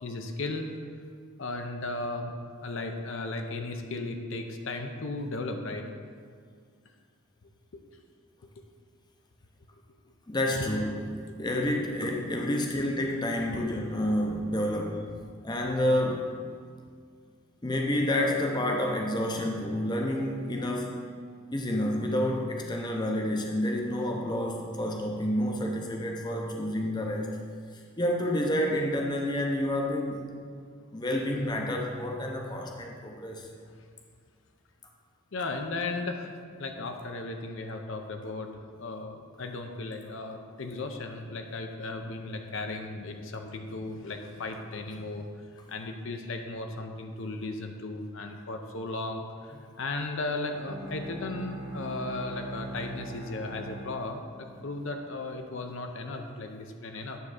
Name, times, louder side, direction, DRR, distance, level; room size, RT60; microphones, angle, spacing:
voice 1, 0.0-0.7 1.4-2.3 2.6-5.9 7.7-7.8 10.5-10.7 12.6-12.7 35.3-36.3 36.6-38.5 38.8-57.2, left 2 dB, 55° left, 4 dB, 0.6 m, -36 dB
voice 2, 10.3-10.9 11.4-15.0 15.4-16.3 17.6-21.0 21.5-27.3 28.0-30.2 30.9-33.5, left 1 dB, 20° left, 1 dB, 0.6 m, -29 dB
Bowed string instrument, 50.4-54.9, right 1 dB, 45° right, 1.0 m, -41 dB
9.5 x 3.6 x 6.5 m, 2.1 s
head